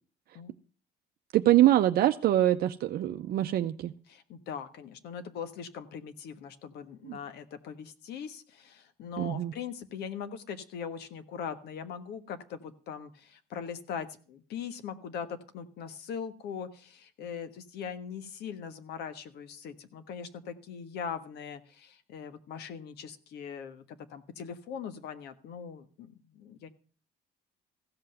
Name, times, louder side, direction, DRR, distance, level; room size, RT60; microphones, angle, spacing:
voice 1, 1.3-3.9 7.0-7.2 9.2-9.5, right 13 dB, 65° right, 7 dB, 0.6 m, -24 dB
voice 2, 4.1-26.7, left 7 dB, 75° left, 10 dB, 1.4 m, -41 dB
15.5 x 5.7 x 7.7 m, 0.40 s
cardioid pair, 110°, 17 cm